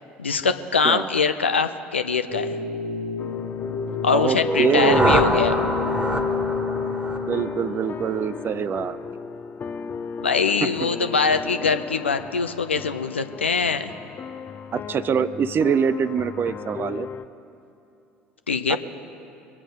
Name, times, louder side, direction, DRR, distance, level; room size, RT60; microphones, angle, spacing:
voice 1, 0.2-2.6 4.0-5.6 10.2-13.9 18.5-18.8, left 5 dB, 90° left, 9 dB, 0.6 m, -23 dB
sound 1, 2.3-8.4, left 5 dB, 75° left, 1.6 m, -31 dB
sound 2, 3.2-17.3, left 5 dB, 35° left, 0.6 m, -33 dB
voice 2, 4.1-5.4 7.3-9.0 10.6-10.7 14.7-17.1 18.7-18.8, right 7 dB, 35° right, 15 dB, 0.5 m, -24 dB
sound 3, 4.3-8.3, right 1 dB, 15° right, 1.6 m, -25 dB
23.0 x 8.6 x 5.2 m, 2.7 s
figure-of-eight pair, 65°, 6 cm